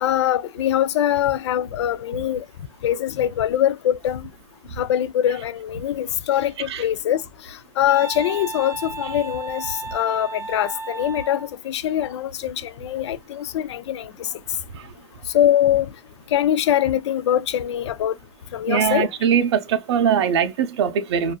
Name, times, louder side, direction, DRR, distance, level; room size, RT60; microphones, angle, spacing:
voice 1, 0.0-2.4 2.8-4.3 4.8-7.2 7.5-14.3 15.3-15.9 16.3-18.1 18.5-19.1, left 11 dB, 75° left, 0.4 m, -23 dB
Wind instrument woodwind instrument, 7.9-11.5, right 3 dB, 15° right, 0.5 m, -33 dB
voice 2, 18.7-21.3, right 8 dB, 70° right, 0.6 m, -21 dB
2.6 x 2.3 x 2.2 m
hypercardioid pair, 140°, 15 cm